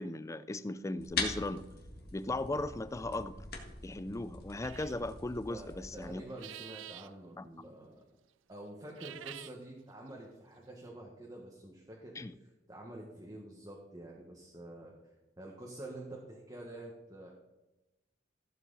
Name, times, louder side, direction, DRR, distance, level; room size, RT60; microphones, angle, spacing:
voice 1, 0.0-1.6 2.1-3.4 3.8-6.2 7.4-7.5 12.2-12.3, left 2 dB, 15° left, 0.4 m, -37 dB
sound 1, 1.0-6.1, left 4 dB, 55° left, 1.8 m, -42 dB
sound 2, 4.6-5.0 6.3-7.1 8.8-9.6, right 12 dB, 85° right, 0.4 m, -47 dB
voice 2, 5.5-7.9 8.5-12.1 12.7-14.9 15.4-17.3, right 1 dB, 20° right, 1.4 m, -47 dB
14.5 x 7.6 x 4.0 m
head